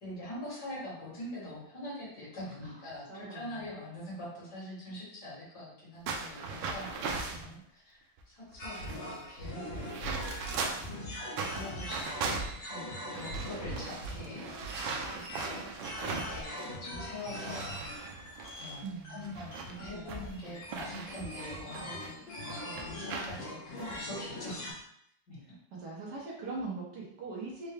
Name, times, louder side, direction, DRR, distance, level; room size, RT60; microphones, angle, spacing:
voice 1, 0.0-10.0 10.8-12.1 12.6-14.8 15.1-15.2 16.0-17.7 18.6-22.2 22.6-24.8 25.3-25.4, left 1 dB, 60° left, -7 dB, 2.2 m, -44 dB
voice 2, 3.1-3.7 7.3-7.6 18.8-19.3 19.8-20.3 25.7-27.7, right 3 dB, 65° right, -4 dB, 1.4 m, -42 dB
sound 1, 6.1-7.5 8.2-8.3 8.5-10.9 11.3-16.8 17.0-22.1 22.5-23.3 23.8-23.9 24.5-24.8, right 4 dB, 90° right, 1.4 m, -39 dB
sound 2, 8.6-24.7, equal, 75° left, 1.9 m, -41 dB
4.5 x 2.2 x 3.3 m, 0.72 s
omnidirectional pair, 2.1 m